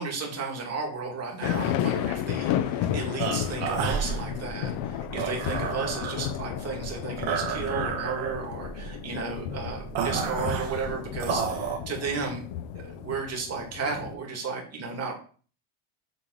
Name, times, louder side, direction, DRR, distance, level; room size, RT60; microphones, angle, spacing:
voice 1, 0.0-12.4 12.7-15.1, right 4 dB, 30° right, 0 dB, 2.3 m, -34 dB
sound 1, 1.4-14.2, left 10 dB, 65° left, 0.8 m, -33 dB
sound 2, 3.2-11.8, right 6 dB, 65° right, 1.9 m, -31 dB
8.2 x 3.5 x 6.4 m, 0.41 s
cardioid pair, 155°, 49 cm